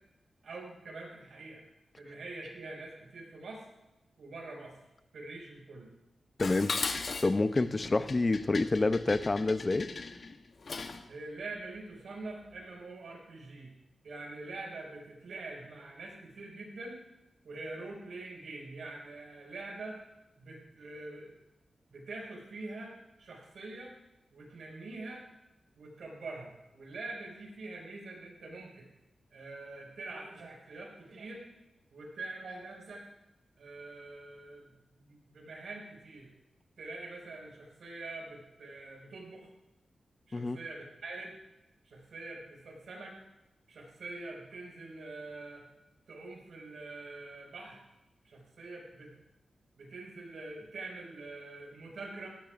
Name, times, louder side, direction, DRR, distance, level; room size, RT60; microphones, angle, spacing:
voice 1, 0.4-1.6 2.0-3.6 4.2-4.8 5.1-5.9 11.1-13.7 14.0-17.0 17.4-20.0 20.4-21.3 21.9-23.9 24.3-25.2 25.8-28.9 29.3-31.4 31.9-33.0 33.6-36.3 36.8-39.5 40.3-41.4 41.8-43.2 43.7-45.7 46.1-47.8 48.2-49.1 49.8-52.3, right 2 dB, 75° right, -1 dB, 5.4 m, -44 dB
Dishes pots and pans, 6.4-11.1, left 4 dB, 50° left, 0.9 m, -38 dB
voice 2, 6.4-6.7 7.2-9.9 40.3-40.6, left 3 dB, 30° left, 12 dB, 0.5 m, -28 dB
18.0 x 17.0 x 2.5 m, 0.95 s
wide cardioid pair, 120°, 0 cm